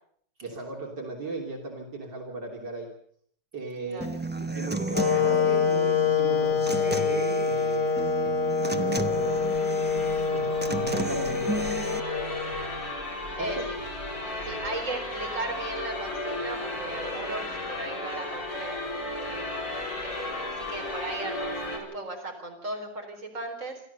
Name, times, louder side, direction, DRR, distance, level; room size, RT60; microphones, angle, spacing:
voice 1, 0.4-2.9 3.5-4.1 4.4-7.9 8.6-9.5 9.9-11.6 13.4-13.7, right 3 dB, 70° right, 0 dB, 3.9 m, -37 dB
voice 2, 3.9-4.2 13.4-13.6 14.4-19.3 20.0-23.9, right 2 dB, 40° right, 2 dB, 4.5 m, -37 dB
Human voice / Acoustic guitar, 4.0-12.0, right 2 dB, 10° right, 0.6 m, -34 dB
Wind instrument woodwind instrument, 4.9-12.9, left 5 dB, 65° left, 3.1 m, -26 dB
sound 1, 8.6-21.8, left 2 dB, 50° left, 4.5 m, -35 dB
27.5 x 13.5 x 6.9 m, 0.63 s
omnidirectional pair, 2.0 m